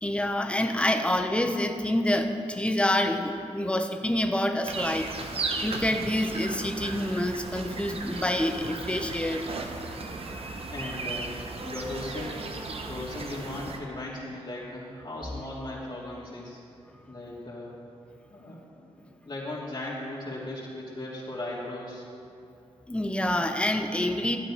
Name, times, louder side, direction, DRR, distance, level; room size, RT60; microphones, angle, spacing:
voice 1, 0.0-5.3 5.6-9.5 10.4-10.5 22.9-24.4, left 1 dB, 10° left, 6 dB, 0.9 m, -27 dB
sound 1, 4.6-13.8, right 3 dB, 60° right, 1.1 m, -36 dB
voice 2, 10.7-11.3 11.6-12.4 12.8-16.6 17.1-17.7 18.3-22.0, left 1 dB, 45° left, -7 dB, 2.9 m, -37 dB
12.5 x 8.1 x 5.0 m, 2.7 s
cardioid pair, 60°, 11 cm